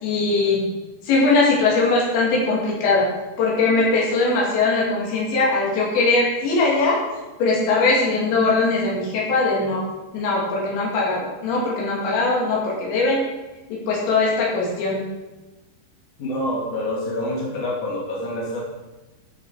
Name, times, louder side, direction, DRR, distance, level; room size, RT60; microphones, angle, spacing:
voice 1, 0.0-0.6 1.1-3.1 3.4-7.0 7.4-9.8 10.1-13.2 13.9-15.0, left 3 dB, 85° left, -4 dB, 4.6 m, -20 dB
voice 2, 16.2-18.6, left 1 dB, 45° left, -3 dB, 2.9 m, -27 dB
12.5 x 5.6 x 4.8 m, 1.1 s
omnidirectional pair, 5.0 m